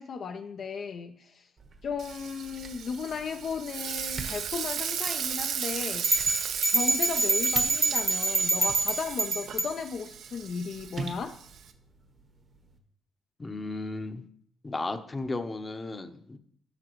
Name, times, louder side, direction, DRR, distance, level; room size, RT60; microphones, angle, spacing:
voice 1, 0.0-1.5 1.8-6.1 6.7-11.4, left 6 dB, 55° left, 6 dB, 0.4 m, -35 dB
sound 1, 1.6-12.8, right 4 dB, 50° right, 1.1 m, -46 dB
Frying (food), 2.0-11.7, right 8 dB, 75° right, 0.6 m, -36 dB
sound 2, 6.0-9.7, right 3 dB, 25° right, 0.6 m, -26 dB
voice 2, 13.4-14.2 14.6-16.4, left 2 dB, 25° left, 8 dB, 0.7 m, -34 dB
11.0 x 6.0 x 3.0 m, 0.65 s
cardioid pair, 90°, 0 cm